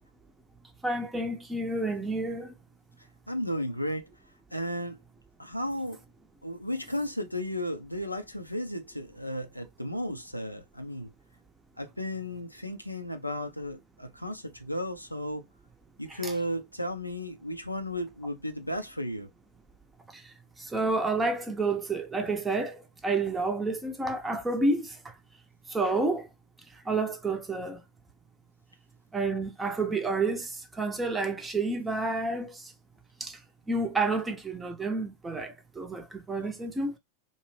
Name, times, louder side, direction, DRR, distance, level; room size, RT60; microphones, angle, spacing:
voice 1, 0.8-2.5 16.2-16.3 20.1-20.3 20.6-25.1 25.7-26.3 26.9-27.8 29.1-32.7 33.2-33.4 33.7-37.0, right 3 dB, 10° right, 0.6 m, -30 dB
voice 2, 3.3-4.1 4.5-5.0 5.4-6.0 6.4-11.1 11.8-15.5 16.0-19.3, left 1 dB, 90° left, 0.4 m, -34 dB
2.6 x 2.0 x 3.1 m
figure-of-eight pair, 90°, 0 cm